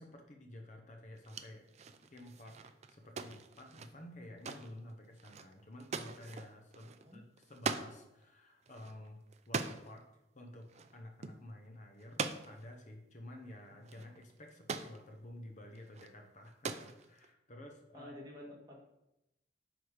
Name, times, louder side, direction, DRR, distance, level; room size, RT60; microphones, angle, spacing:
voice 1, 0.0-1.6 2.1-2.6 2.9-10.0 10.3-18.1, left 1 dB, 45° left, 3 dB, 0.9 m, -52 dB
sound 1, 1.2-7.9 8.2-8.3 8.6-10.0 10.7-11.0 11.2-11.4 12.0-12.7 13.5-13.6 13.8-15.0 15.8-16.1 16.4-17.3, right 4 dB, 40° right, 0.4 m, -42 dB
voice 2, 6.8-7.2 17.9-18.8, left 1 dB, 20° right, -3 dB, 1.9 m, -50 dB
9.3 x 3.9 x 4.9 m, 0.90 s
head